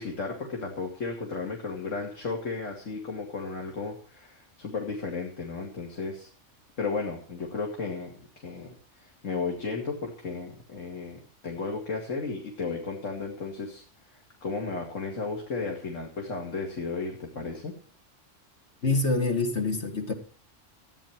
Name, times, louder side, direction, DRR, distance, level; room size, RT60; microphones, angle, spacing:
voice 1, 0.0-6.3 6.8-13.8 14.1-17.7, left 4 dB, 80° left, 2.7 m, -34 dB
voice 2, 18.8-20.1, left 3 dB, 65° left, 2.6 m, -26 dB
15.0 x 9.7 x 6.0 m
omnidirectional pair, 1.3 m